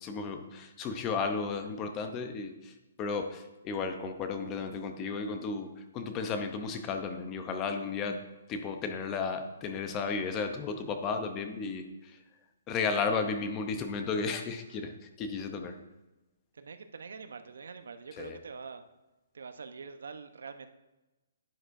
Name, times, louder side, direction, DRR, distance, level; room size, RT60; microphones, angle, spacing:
voice 1, 0.0-8.2 8.5-12.2 12.7-15.8 18.2-18.4, left 4 dB, 20° left, 7 dB, 0.6 m, -34 dB
voice 2, 16.5-18.8 19.3-20.7, right 5 dB, 80° right, 9 dB, 0.8 m, -45 dB
11.0 x 9.3 x 2.6 m, 1.0 s
hypercardioid pair, 165°, 0 cm